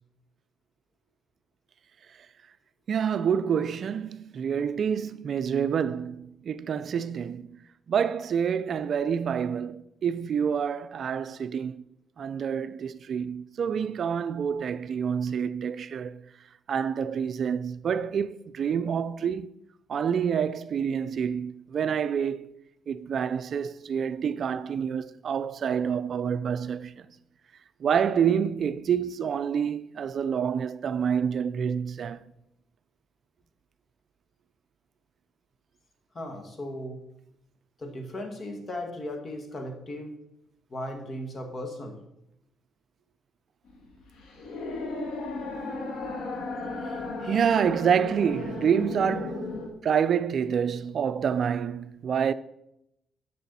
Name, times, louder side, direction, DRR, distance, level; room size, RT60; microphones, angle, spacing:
voice 1, 2.9-7.6 7.9-11.8 12.2-16.3 16.7-19.5 19.9-22.5 22.9-27.1 27.8-32.2 47.2-49.5 49.8-52.3, right 7 dB, 55° right, 0.4 m, -27 dB
voice 2, 36.1-37.0 37.8-40.1 40.7-42.0, left 1 dB, 40° left, 2.1 m, -36 dB
sound 1, 43.7-49.7, left 3 dB, 85° left, 2.2 m, -35 dB
11.0 x 6.8 x 4.2 m
cardioid pair, 90°, 0 cm